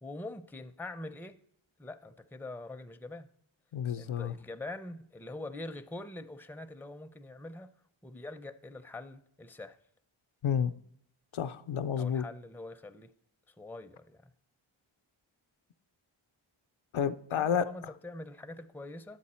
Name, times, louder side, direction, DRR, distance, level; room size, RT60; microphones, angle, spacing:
voice 1, 0.0-1.4 1.8-3.3 4.0-7.7 8.0-9.8 12.0-13.1 13.5-14.3 17.3-19.2, left 2 dB, 5° left, 9 dB, 0.5 m, -44 dB
voice 2, 3.7-4.3 10.4-10.7 11.3-12.2 16.9-17.6, left 8 dB, 75° left, 9 dB, 0.5 m, -30 dB
10.5 x 7.6 x 4.3 m, 0.71 s
wide cardioid pair, 45°, 50 cm